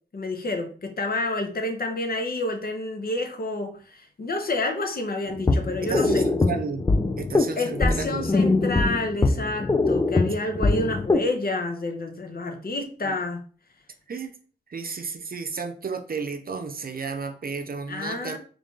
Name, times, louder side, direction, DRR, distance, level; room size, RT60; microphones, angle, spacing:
voice 1, 0.1-6.3 7.6-13.4 17.9-18.4, left 2 dB, 50° left, 4 dB, 0.9 m, -29 dB
sound 1, 5.3-11.3, left 3 dB, 20° left, 0.5 m, -23 dB
voice 2, 5.8-6.8 7.2-8.3 13.0-13.2 14.1-14.3 14.7-18.4, right 5 dB, 50° right, 7 dB, 0.6 m, -32 dB
3.2 x 2.5 x 3.7 m, 0.41 s
cardioid pair, 45°, 19 cm